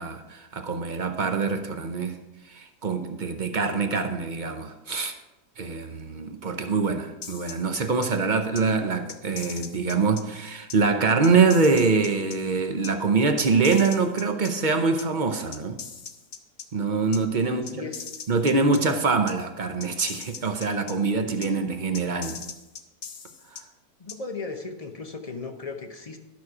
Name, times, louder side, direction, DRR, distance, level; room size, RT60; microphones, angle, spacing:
voice 1, 0.0-2.2 2.5-5.2 5.6-15.8 16.7-17.9 18.3-22.4 23.5-23.6, right 4 dB, 55° right, 7 dB, 0.5 m, -24 dB
sound 1, 7.2-8.1 8.6-8.7 9.1-10.2 10.7-10.8 11.2-12.4 12.8-12.9 13.4-14.5 15.0-15.1 15.5-16.7 17.1-17.2 17.7-18.8 19.3-19.4 19.8-20.9 21.4-21.5 21.9-23.6 24.1-24.2, left 7 dB, 65° left, 1.3 m, -39 dB
voice 2, 17.4-18.1 24.0-26.2, left 4 dB, 40° left, 5 dB, 0.5 m, -36 dB
12.5 x 6.2 x 4.8 m, 1.0 s
omnidirectional pair, 1.7 m